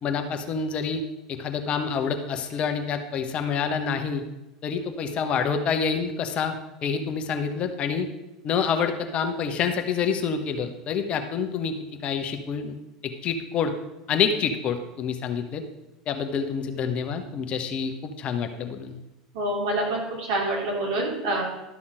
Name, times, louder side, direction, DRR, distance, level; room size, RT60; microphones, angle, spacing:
voice 1, 0.0-1.0 1.3-4.2 4.6-6.6 6.8-8.1 8.4-11.7 12.0-12.7 13.0-13.7 14.1-15.6 16.1-19.0, left 6 dB, 40° left, 6 dB, 1.1 m, -27 dB
voice 2, 19.3-21.4, right 1 dB, 65° right, -2 dB, 3.3 m, -26 dB
12.5 x 5.7 x 4.9 m, 0.97 s
hypercardioid pair, 80°, 3 cm